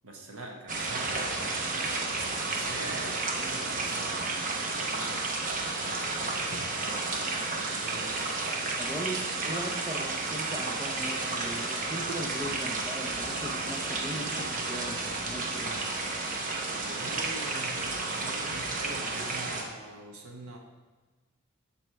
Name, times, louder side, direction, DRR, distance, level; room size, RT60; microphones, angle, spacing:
voice 1, 0.0-2.0 2.5-5.5 5.9-8.8 16.8-20.6, right 1 dB, 85° right, 1 dB, 1.3 m, -45 dB
sound 1, 0.7-19.6, right 3 dB, 40° right, 0.9 m, -32 dB
voice 2, 8.8-15.8, right 1 dB, 15° right, 0 dB, 0.6 m, -39 dB
14.0 x 4.9 x 3.4 m, 1.3 s
head